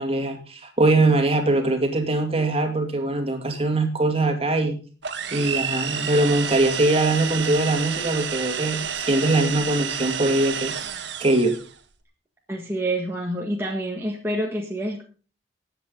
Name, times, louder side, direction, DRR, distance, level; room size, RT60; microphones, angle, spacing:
voice 1, 0.0-4.8 5.3-10.7 11.2-11.5, right 2 dB, 35° right, 5 dB, 2.3 m, -22 dB
sound 1, 5.0-11.7, right 7 dB, 80° right, 1.5 m, -30 dB
voice 2, 12.5-15.0, right 1 dB, 15° right, -1 dB, 1.7 m, -27 dB
20.5 x 8.0 x 3.9 m, 0.37 s
head